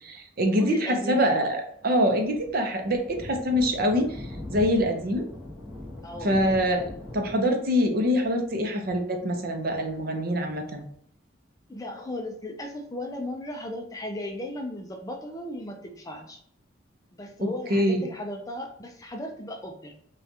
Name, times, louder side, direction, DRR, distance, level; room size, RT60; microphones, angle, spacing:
voice 1, 0.0-4.2 4.5-5.2 6.2-6.8 7.1-10.8 17.7-18.1, equal, 45° right, 4 dB, 0.7 m, -24 dB
voice 2, 0.6-1.5 6.0-6.4 6.7-7.0 11.7-16.4 17.1-19.9, left 1 dB, 15° left, 3 dB, 0.4 m, -36 dB
Thunder, 1.8-10.9, left 1 dB, 5° right, 1.1 m, -42 dB
5.8 x 2.4 x 2.7 m, 0.64 s
head